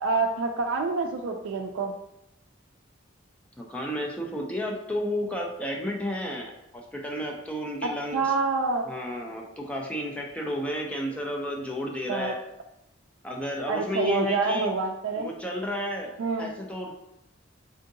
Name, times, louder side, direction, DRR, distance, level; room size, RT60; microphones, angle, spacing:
voice 1, 0.0-1.9 8.1-8.8 12.1-12.3 13.7-15.3 16.2-16.5, right 4 dB, 80° right, 2 dB, 0.3 m, -27 dB
voice 2, 3.6-8.3 8.8-12.4 13.2-14.7 15.2-16.1 16.4-16.9, equal, 5° left, -1 dB, 0.4 m, -32 dB
3.6 x 2.6 x 2.6 m, 0.84 s
head